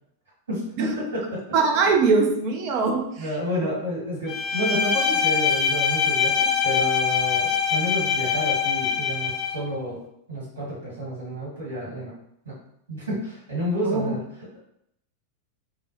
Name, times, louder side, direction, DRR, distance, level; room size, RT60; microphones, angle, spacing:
voice 1, 0.5-1.4 3.2-10.0 10.3-12.1 12.4-12.5 12.9-14.2, equal, 75° right, -6 dB, 1.4 m, -30 dB
voice 2, 1.5-3.3 3.6-3.7 13.8-14.1, right 4 dB, 45° right, 3 dB, 0.3 m, -22 dB
Bowed string instrument, 4.3-9.6, left 7 dB, 30° left, 0.5 m, -23 dB
2.4 x 2.0 x 2.7 m, 0.75 s
figure-of-eight pair, 90°, 0 cm